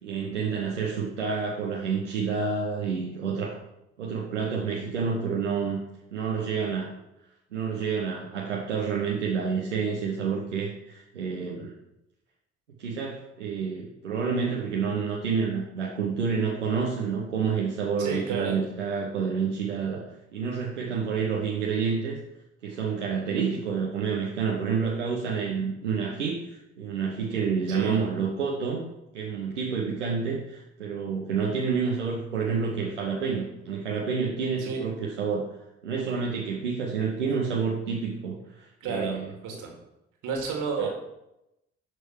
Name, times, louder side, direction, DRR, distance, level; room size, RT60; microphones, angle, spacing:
voice 1, 0.0-3.6 4.0-5.8 6.1-6.9 7.5-11.7 12.8-22.2 22.6-28.8 29.1-35.5 35.8-39.3 40.8-40.9, right 5 dB, 80° right, -2 dB, 1.0 m, -29 dB
voice 2, 18.0-18.6 27.7-28.0 34.6-34.8 38.8-39.7 40.2-40.9, right 5 dB, 60° right, 1 dB, 2.5 m, -31 dB
11.0 x 6.4 x 4.7 m, 0.89 s
figure-of-eight pair, 45°, 35 cm